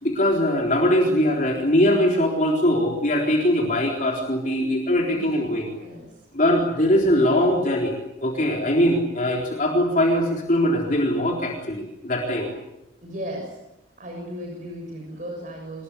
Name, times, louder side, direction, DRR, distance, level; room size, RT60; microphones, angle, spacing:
voice 1, 0.0-5.7 6.3-12.5, left 1 dB, 45° left, 0 dB, 3.9 m, -21 dB
voice 2, 0.9-1.2 5.1-5.4 5.8-6.1 7.0-7.5 13.0-13.6 14.0-15.8, equal, 45° right, 1 dB, 6.9 m, -36 dB
25.5 x 21.5 x 8.3 m, 0.91 s
head